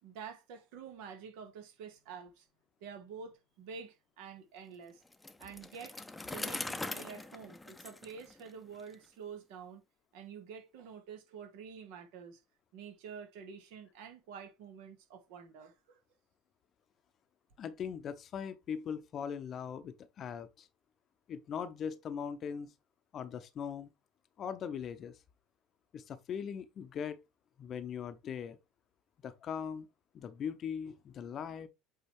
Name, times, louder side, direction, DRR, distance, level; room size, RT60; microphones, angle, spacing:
voice 1, 0.0-2.5 2.8-5.0 5.4-6.0 6.3-9.8 10.1-12.4 12.7-16.0, right 6 dB, 65° right, 1.8 m, -48 dB
Bicycle, 5.1-8.9, left 2 dB, 10° left, 0.8 m, -42 dB
voice 2, 17.6-20.7 21.3-22.7 23.1-23.9 24.4-25.1 25.9-27.2 27.6-28.6 29.2-29.9 30.1-31.7, left 7 dB, 40° left, 0.8 m, -40 dB
7.9 x 3.9 x 3.3 m
figure-of-eight pair, 70°, 0 cm